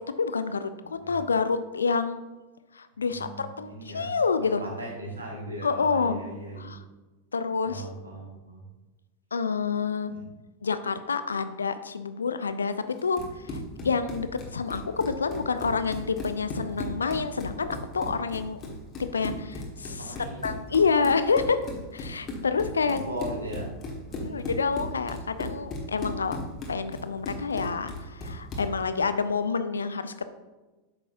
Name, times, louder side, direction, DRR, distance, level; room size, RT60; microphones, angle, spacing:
voice 1, 0.2-2.2 2.7-4.6 5.6-6.2 6.6-6.8 7.3-7.9 9.3-10.1 10.6-13.6 13.8-18.6 19.0-20.1 20.4-21.6 21.9-23.0 24.2-26.4 26.7-30.3, left 5 dB, 75° left, 11 dB, 0.4 m, -28 dB
voice 2, 0.8-1.1 3.1-4.1 4.4-6.7 7.6-8.6 10.1-10.3 20.0-20.6 22.8-23.7 24.1-24.5, right 1 dB, 75° right, 0 dB, 1.6 m, -38 dB
Run, 13.0-28.8, left 1 dB, 30° left, 1.4 m, -37 dB
8.6 x 6.2 x 2.6 m, 1.2 s
figure-of-eight pair, 90°, 0 cm